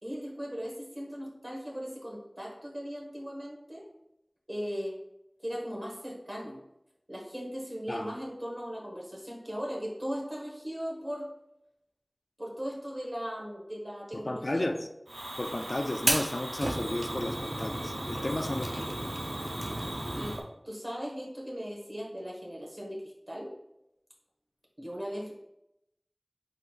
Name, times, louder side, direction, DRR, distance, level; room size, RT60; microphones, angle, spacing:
voice 1, 0.0-3.9 4.5-5.0 5.4-6.6 7.1-11.3 12.4-14.7 18.1-19.0 20.2-20.4 20.6-23.5 24.8-25.3, equal, 35° right, -2 dB, 1.3 m, -38 dB
voice 2, 14.1-14.9 15.4-19.2, left 1 dB, 65° left, 5 dB, 0.3 m, -33 dB
Fire, 15.1-20.4, right 1 dB, 70° right, 0.6 m, -33 dB
4.4 x 3.9 x 2.4 m, 0.86 s
wide cardioid pair, 45°, 0 cm